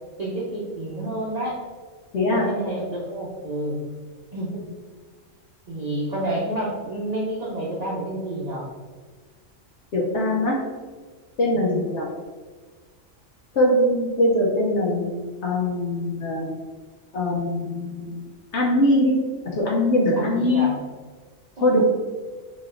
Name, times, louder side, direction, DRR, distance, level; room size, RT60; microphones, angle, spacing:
voice 1, 0.2-1.6 2.3-3.8 4.3-4.5 5.7-8.7 11.5-11.9 20.2-20.7 21.6-21.8, right 1 dB, 40° right, -6 dB, 0.7 m, -29 dB
voice 2, 2.1-2.5 9.9-10.6 11.4-12.1 13.5-15.1 15.4-16.5 17.1-18.2 18.5-19.2 19.5-20.7 21.6-21.8, left 1 dB, 65° left, -3 dB, 1.0 m, -21 dB
4.1 x 3.0 x 3.7 m, 1.4 s
omnidirectional pair, 1.4 m